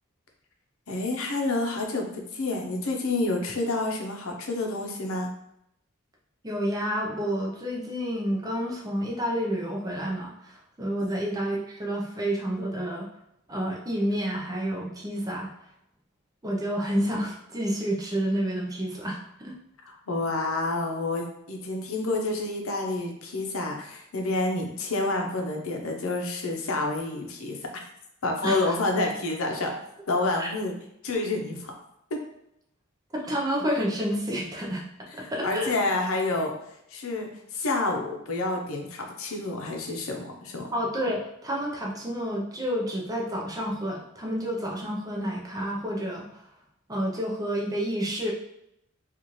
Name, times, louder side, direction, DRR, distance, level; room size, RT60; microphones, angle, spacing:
voice 1, 0.9-2.0 2.3-5.3 19.9-27.6 28.2-29.7 30.1-30.7 31.0-31.7 32.1-32.2 35.2-36.5 36.9-40.7, left 2 dB, 70° left, 1 dB, 0.7 m, -28 dB
voice 2, 6.4-13.1 13.5-15.5 16.4-19.5 28.4-28.8 30.4-30.5 33.1-34.8 35.1-35.8 40.7-46.4 46.9-48.3, equal, 15° right, -2 dB, 0.6 m, -29 dB
4.0 x 2.4 x 3.1 m, 0.79 s
head